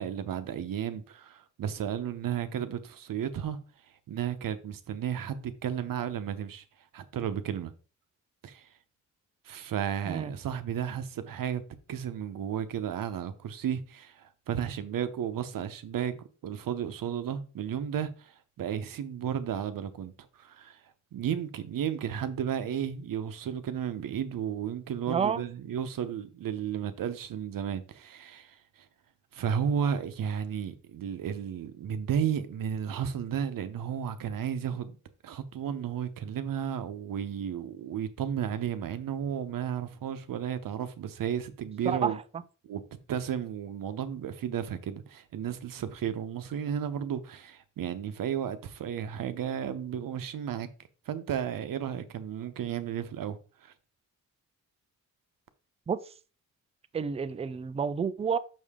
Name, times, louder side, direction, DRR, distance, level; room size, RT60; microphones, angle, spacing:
voice 1, 0.0-3.6 4.1-6.6 6.9-7.7 8.4-8.7 9.5-11.6 11.9-20.1 20.4-20.8 21.1-28.5 29.3-35.0 35.2-42.2 42.6-42.8 43.1-50.7 51.1-53.7, right 8 dB, 80° right, 0.9 m, -33 dB
voice 2, 25.1-25.4 41.8-42.1 55.9-56.0 56.9-58.4, right 6 dB, 20° right, 0.3 m, -29 dB
6.5 x 6.2 x 3.6 m
wide cardioid pair, 180°, 33 cm